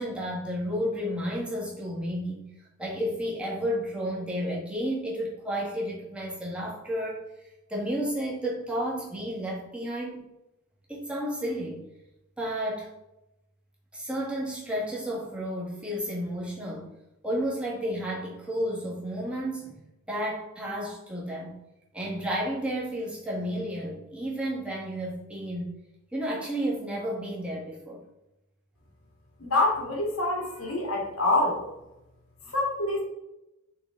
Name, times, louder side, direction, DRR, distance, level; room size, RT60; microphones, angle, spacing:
voice 1, 0.0-2.5 2.8-7.2 7.7-10.2 10.9-11.9 12.4-12.9 13.9-16.9 17.2-19.8 20.1-21.6 21.9-25.7 26.1-28.0, equal, 5° right, -5 dB, 1.7 m, -32 dB
voice 2, 29.4-31.6 32.5-33.0, left 2 dB, 80° left, -1 dB, 2.0 m, -26 dB
6.5 x 4.0 x 3.8 m, 0.91 s
head